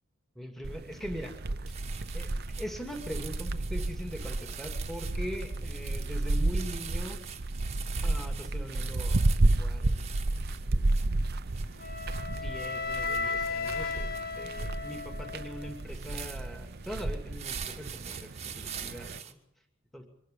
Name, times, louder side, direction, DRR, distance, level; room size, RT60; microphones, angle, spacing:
voice 1, 0.3-1.4 2.1-7.2 8.0-9.2 9.5-10.0 10.6-11.0 12.3-19.4 19.9-20.1, equal, ahead, 4 dB, 2.6 m, -41 dB
sound 1, 0.6-19.2, right 2 dB, 50° right, 0.8 m, -32 dB
sound 2, 1.2-1.4 1.7-19.3, right 9 dB, 30° right, 1.4 m, -45 dB
Wind instrument woodwind instrument, 11.8-15.8, left 4 dB, 45° left, 1.3 m, -35 dB
24.0 x 12.0 x 10.0 m, 0.74 s
head